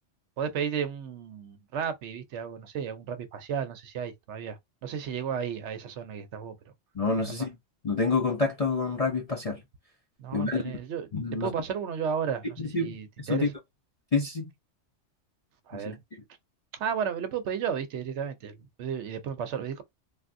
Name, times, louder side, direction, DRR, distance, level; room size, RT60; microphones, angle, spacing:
voice 1, 0.4-6.5 7.4-7.5 10.2-13.5 15.7-16.0 16.7-19.8, right 7 dB, 70° right, 0.9 m, -33 dB
voice 2, 7.0-7.6 7.8-9.6 10.3-10.7 11.1-11.5 12.6-13.5 14.1-14.5 15.7-15.8, left 4 dB, 45° left, 0.5 m, -28 dB
3.4 x 2.3 x 2.5 m
omnidirectional pair, 1.3 m